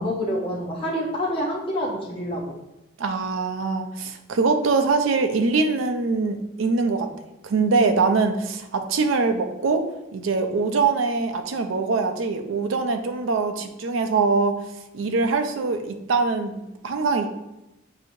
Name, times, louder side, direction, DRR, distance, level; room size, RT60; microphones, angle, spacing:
voice 1, 0.0-2.6, equal, 25° left, -3 dB, 0.7 m, -27 dB
voice 2, 3.0-7.1 7.4-9.8 10.1-14.6 14.9-17.3, right 4 dB, 85° right, 6 dB, 0.5 m, -23 dB
5.9 x 2.7 x 2.6 m, 0.92 s
head